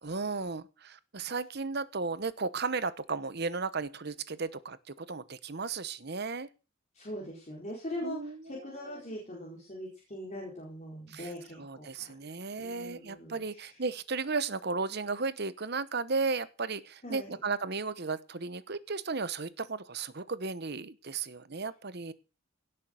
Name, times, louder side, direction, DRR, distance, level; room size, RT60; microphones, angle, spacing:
voice 1, 0.0-6.5 8.0-9.2 11.1-11.3 11.6-22.1, right 4 dB, 50° right, 15 dB, 1.0 m, -35 dB
voice 2, 6.9-12.1 12.6-13.8 17.0-17.3, left 1 dB, 35° left, -3 dB, 4.2 m, -41 dB
17.0 x 7.4 x 6.4 m, 0.33 s
head